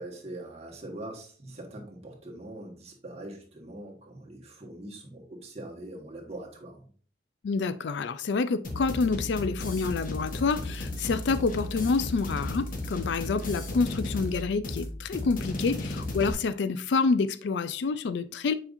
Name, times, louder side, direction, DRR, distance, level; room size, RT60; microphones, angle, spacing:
voice 1, 0.0-6.9, right 1 dB, 35° right, 1.6 m, -42 dB
voice 2, 7.4-18.5, left 4 dB, 70° left, 0.4 m, -28 dB
sound 1, 8.6-16.3, left 1 dB, 50° left, 1.1 m, -34 dB
7.1 x 5.1 x 2.6 m
head